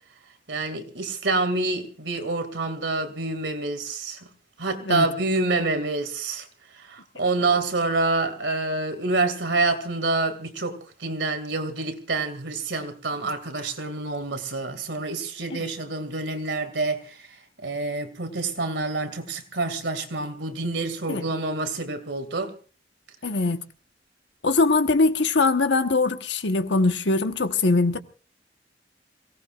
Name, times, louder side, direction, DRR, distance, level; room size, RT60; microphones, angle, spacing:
voice 1, 0.5-4.2 4.6-6.5 6.7-17.3 17.6-22.5, right 3 dB, 80° right, 2.4 m, -27 dB
voice 2, 23.2-23.6 24.4-28.0, left 3 dB, 80° left, 1.3 m, -22 dB
27.0 x 18.0 x 2.5 m
head